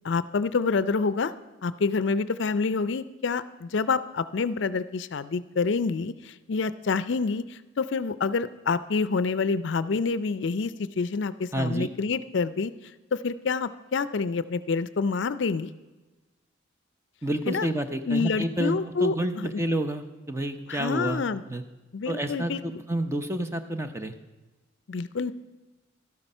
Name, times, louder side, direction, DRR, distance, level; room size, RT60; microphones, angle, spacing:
voice 1, 0.0-1.3 1.6-12.7 13.1-15.7 17.5-17.7 18.1-19.6 20.7-21.4 21.9-22.6 24.9-25.3, left 4 dB, 65° left, 15 dB, 0.4 m, -27 dB
voice 2, 11.5-11.9 17.2-21.6 22.1-24.1, right 1 dB, 15° right, 8 dB, 0.6 m, -29 dB
13.0 x 11.5 x 5.4 m, 1.1 s
head